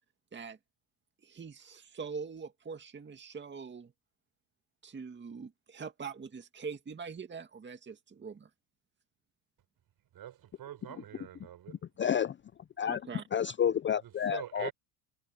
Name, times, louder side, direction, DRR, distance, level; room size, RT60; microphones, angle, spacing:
voice 1, 1.2-3.9 4.8-8.5 12.9-13.2, right 5 dB, 20° right, 2.2 m, -43 dB
voice 2, 10.1-11.8 14.0-14.7, right 11 dB, 45° right, 4.7 m, -44 dB
voice 3, 12.0-12.3 12.8-13.0 13.3-14.7, left 9 dB, 25° left, 0.5 m, -29 dB
supercardioid pair, 105°, 49 cm